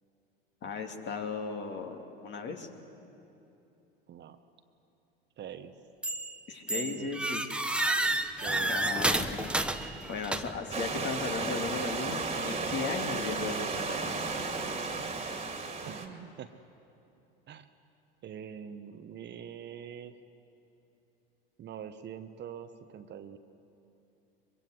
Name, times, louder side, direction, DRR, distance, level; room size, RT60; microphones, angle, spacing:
voice 1, 0.6-2.7 6.5-7.4 8.1-8.2 8.6-9.6 10.1-14.2, left 4 dB, 40° left, 4 dB, 2.6 m, -36 dB
voice 2, 5.4-5.7 6.7-7.3 8.4-8.9 14.9-15.0 15.8-16.5 17.5-17.6 18.2-20.2 21.6-23.4, right 8 dB, 35° right, 9 dB, 1.1 m, -44 dB
sound 1, 6.0-6.4 6.7-10.7, right 1 dB, 5° right, 1.1 m, -30 dB
Stream / Liquid, 10.7-16.1, right 4 dB, 20° right, 2.4 m, -34 dB
23.5 x 23.0 x 7.9 m, 2.9 s
hypercardioid pair, 80°, 29 cm